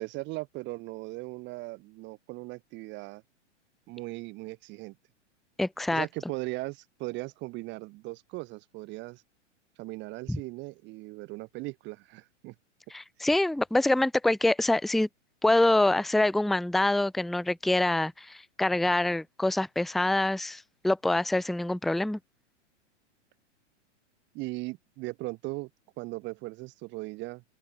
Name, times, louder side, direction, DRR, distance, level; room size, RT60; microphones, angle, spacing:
voice 1, 0.0-3.2 3.9-4.9 5.9-9.2 9.8-12.5 24.3-25.7 26.0-27.4, right 22 dB, 30° right, 0.9 m, -38 dB
voice 2, 5.6-6.1 10.3-10.4 12.9-15.1 15.4-22.2, left 2 dB, ahead, 0.7 m, -25 dB
open air
hypercardioid pair, 115°, 36 cm